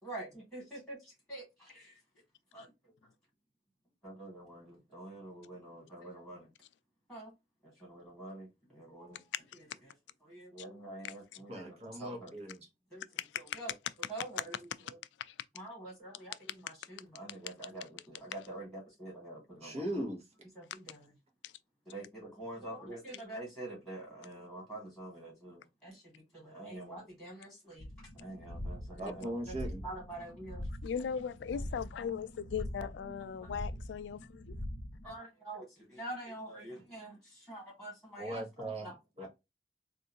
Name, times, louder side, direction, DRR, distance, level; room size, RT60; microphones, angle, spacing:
voice 1, 0.0-2.0 2.5-2.6 4.0-6.5 7.1-7.3 7.6-9.2 9.6-9.7 10.2-12.3 12.9-13.0 13.3-13.7 14.1-15.0 15.5-19.8 20.5-21.1 21.9-27.9 28.1-29.6 29.8-30.7 30.9-31.1 31.5-31.6 32.0-32.2 33.0-33.6 35.0-38.4 38.8-38.9 39.2-39.3, right 1 dB, ahead, 1.9 m, -46 dB
voice 2, 11.5-12.7 19.6-20.2 29.0-29.8 38.2-39.3, right 1 dB, 35° right, 1.2 m, -39 dB
voice 3, 13.2-13.6 15.2-15.3 21.4-21.5 30.8-34.5, left 7 dB, 75° left, 0.3 m, -38 dB
sound 1, 27.8-35.2, equal, 30° left, 0.9 m, -43 dB
3.5 x 2.5 x 2.7 m
head